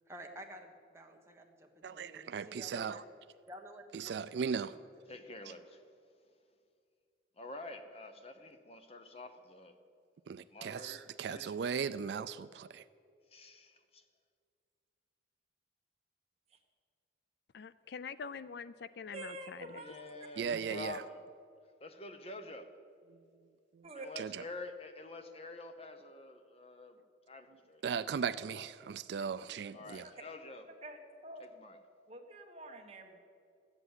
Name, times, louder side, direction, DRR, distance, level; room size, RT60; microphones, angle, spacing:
voice 1, 0.1-3.0 3.5-4.3 4.6-5.2, equal, 15° right, 2 dB, 1.2 m, -52 dB
voice 2, 1.8-3.0 3.9-4.8 10.3-12.8 20.4-21.0 23.1-23.2 23.7-23.9 24.2-24.4 27.8-30.1, right 6 dB, 60° right, 14 dB, 0.3 m, -37 dB
voice 3, 5.1-5.8 7.4-9.7 10.5-11.5 13.3-14.0 19.7-21.2 21.8-22.7 24.0-27.0 27.3-27.8 29.7-30.7 31.4-31.8, left 2 dB, 30° left, 7 dB, 0.9 m, -48 dB
voice 4, 17.5-19.8 20.5-20.6, left 5 dB, 60° left, 16 dB, 0.4 m, -45 dB
voice 5, 19.1-20.1 23.8-24.1 30.7-31.4 32.1-33.2, right 2 dB, 35° right, 2 dB, 1.5 m, -47 dB
13.0 x 8.0 x 9.7 m, 2.3 s
head